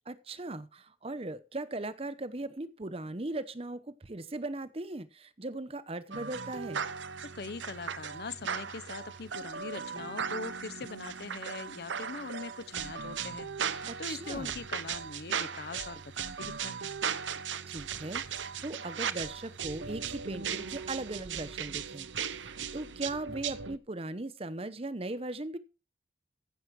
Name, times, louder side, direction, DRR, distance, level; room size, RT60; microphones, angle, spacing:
voice 1, 0.1-6.9 13.8-14.6 17.7-25.6, right 2 dB, 30° right, 0.8 m, -39 dB
sound 1, 6.1-23.8, right 7 dB, 85° right, 0.8 m, -37 dB
voice 2, 7.2-16.9, left 4 dB, 60° left, 0.7 m, -42 dB
15.0 x 7.0 x 4.7 m
head